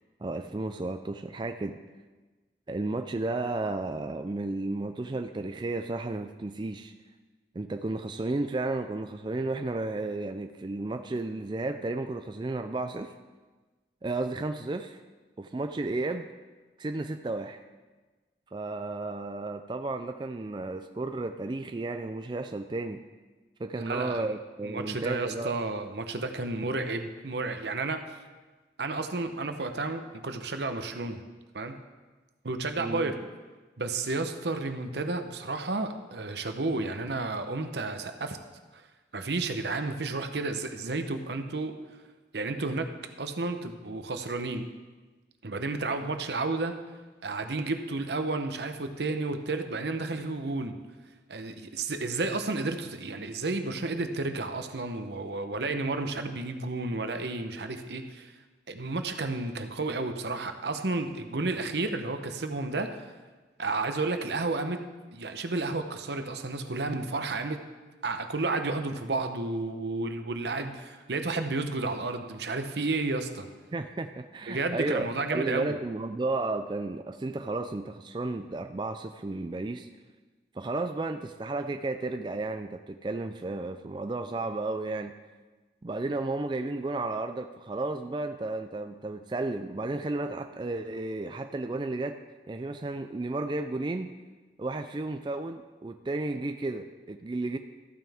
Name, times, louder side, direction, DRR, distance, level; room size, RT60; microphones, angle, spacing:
voice 1, 0.2-1.8 2.7-6.9 7.5-13.1 14.0-15.0 15.4-16.3 16.8-17.6 18.5-23.0 23.6-25.5 32.8-33.1 73.7-79.9 80.6-85.2 85.8-92.2 92.5-94.1 94.6-97.6, right 2 dB, 25° right, 7 dB, 0.3 m, -33 dB
voice 2, 23.7-24.2 24.6-28.0 28.8-31.2 31.5-31.7 32.4-33.2 33.8-38.4 39.1-41.7 42.3-42.9 43.2-44.7 45.4-46.8 47.2-50.7 51.3-58.3 58.7-63.1 63.6-64.8 65.1-67.6 68.0-73.5 74.5-75.8, right 3 dB, 75° right, 7 dB, 0.9 m, -32 dB
14.0 x 9.2 x 3.5 m, 1.3 s
head